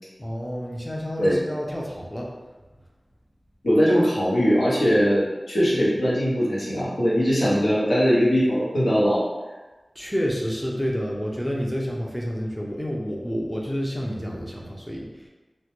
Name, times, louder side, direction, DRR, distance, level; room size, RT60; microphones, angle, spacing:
voice 1, 0.2-2.3 10.0-15.3, equal, 5° left, -2 dB, 0.4 m, -29 dB
voice 2, 3.6-9.2, equal, 85° left, -7 dB, 0.7 m, -20 dB
2.1 x 2.1 x 2.9 m, 1.2 s
wide cardioid pair, 50°, 0 cm